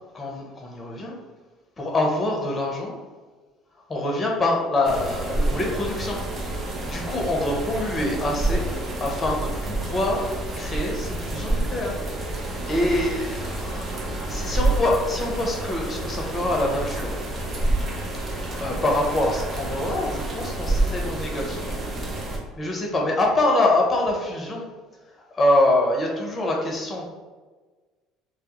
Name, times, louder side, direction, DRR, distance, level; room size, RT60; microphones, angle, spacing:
voice 1, 0.1-1.2 1.8-3.0 3.9-6.2 6.8-8.7 9.0-12.0 12.3-17.2 18.6-21.8 22.6-24.7 25.1-27.1, left 1 dB, 30° left, 0 dB, 0.7 m, -25 dB
sound 1, 4.8-22.4, right 2 dB, 35° right, 0.6 m, -28 dB
2.2 x 2.0 x 2.9 m, 1.3 s
hypercardioid pair, 70°, 0 cm